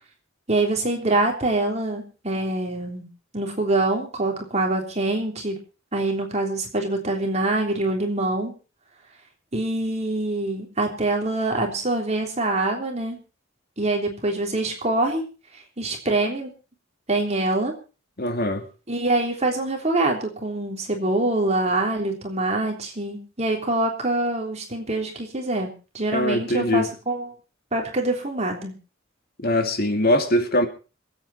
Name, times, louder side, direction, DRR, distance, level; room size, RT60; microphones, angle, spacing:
voice 1, 0.5-3.1 3.3-5.6 5.9-8.5 9.5-13.2 13.8-15.2 15.5-16.5 17.1-17.7 18.9-27.3 27.7-28.7, right 2 dB, 35° right, 3.4 m, -25 dB
voice 2, 18.2-18.6 26.1-26.9 29.4-30.7, left 1 dB, 50° left, 2.3 m, -22 dB
26.0 x 8.8 x 4.3 m
head